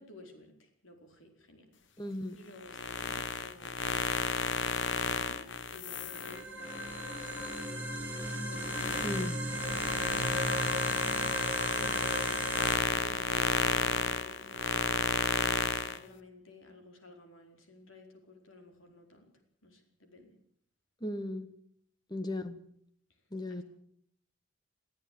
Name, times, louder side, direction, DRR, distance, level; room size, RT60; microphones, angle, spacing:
voice 1, 0.0-2.0 2.3-7.4 8.2-9.5 11.7-19.3 19.6-20.3 23.5-23.6, left 1 dB, 75° left, 5 dB, 4.8 m, -54 dB
voice 2, 2.0-2.4 9.0-9.4 21.0-21.5 22.1-22.6 23.3-23.6, left 1 dB, 20° left, 12 dB, 1.4 m, -36 dB
sound 1, 2.6-7.7 8.1-16.0, left 5 dB, 60° left, 1.2 m, -32 dB
sound 2, 5.8-12.8, right 1 dB, 5° right, 3.6 m, -36 dB
23.0 x 14.0 x 8.7 m, 0.67 s
head